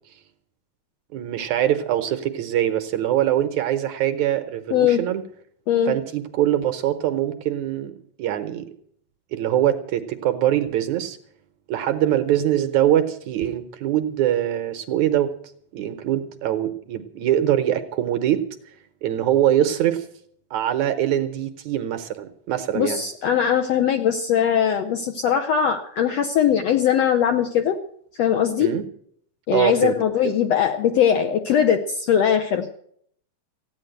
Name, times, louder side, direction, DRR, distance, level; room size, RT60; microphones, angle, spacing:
voice 1, 1.1-5.2 5.9-8.7 9.3-11.2 11.7-15.3 15.7-18.4 19.0-20.1 20.5-23.0 28.6-28.8 29.5-30.0 30.2-30.3, right 11 dB, 70° right, 8 dB, 2.0 m, -23 dB
voice 2, 4.7-5.0 5.7-6.0 22.7-27.8 28.2-28.7 29.5-32.8, left 9 dB, 75° left, 6 dB, 1.5 m, -20 dB
15.5 x 9.4 x 7.9 m, 0.65 s
omnidirectional pair, 3.9 m